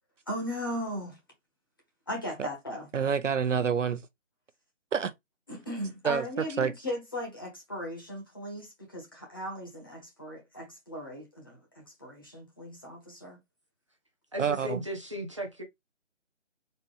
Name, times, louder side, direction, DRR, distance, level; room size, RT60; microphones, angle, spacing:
voice 1, 0.3-1.2 2.1-2.9 5.5-13.4, equal, 20° left, 1.0 m, -37 dB
voice 2, 2.9-4.0 4.9-5.1 6.0-6.7 14.4-14.8, right 6 dB, 75° right, 0.8 m, -28 dB
voice 3, 14.3-15.6, equal, 25° right, 0.7 m, -36 dB
4.2 x 2.8 x 3.1 m
figure-of-eight pair, 170°, 38 cm